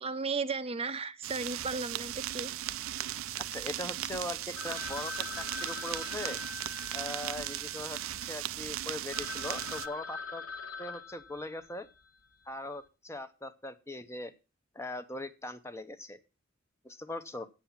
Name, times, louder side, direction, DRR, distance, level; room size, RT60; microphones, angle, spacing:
voice 1, 0.0-2.5, right 4 dB, 30° right, 11 dB, 0.6 m, -35 dB
sound 1, 1.2-9.9, right 13 dB, 75° right, 0.4 m, -37 dB
voice 2, 3.4-6.4 6.9-10.4 10.8-11.9 12.5-14.3 14.7-16.2 16.8-17.5, left 1 dB, 15° left, 10 dB, 0.7 m, -40 dB
Telephone, 4.6-8.3 8.8-8.9 9.1-12.0, left 5 dB, 75° left, 1.6 m, -43 dB
8.3 x 7.3 x 7.2 m, 0.31 s
head